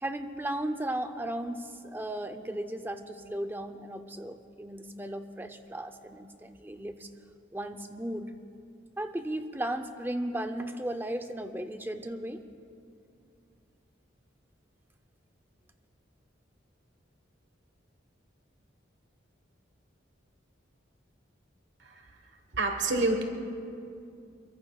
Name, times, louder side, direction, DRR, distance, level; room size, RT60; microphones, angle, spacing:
voice 1, 0.0-7.1 7.5-8.3 9.0-12.4, right 1 dB, 10° right, 7 dB, 0.6 m, -35 dB
voice 2, 21.8-22.1 22.5-23.2, right 2 dB, 70° right, 5 dB, 1.3 m, -28 dB
25.5 x 22.5 x 2.4 m, 2.5 s
head